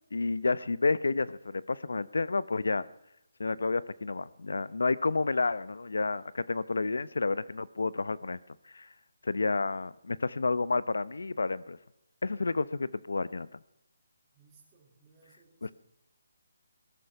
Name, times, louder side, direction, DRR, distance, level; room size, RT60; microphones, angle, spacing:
voice 1, 0.1-2.9 3.4-8.4 8.7-8.9 9.2-11.8 12.2-13.5 15.6-15.7, left 3 dB, 85° left, 18 dB, 0.8 m, -30 dB
voice 2, 14.3-15.7, right 4 dB, 10° right, -7 dB, 3.8 m, -62 dB
19.5 x 11.5 x 5.8 m, 0.86 s
hypercardioid pair, 170°, 0 cm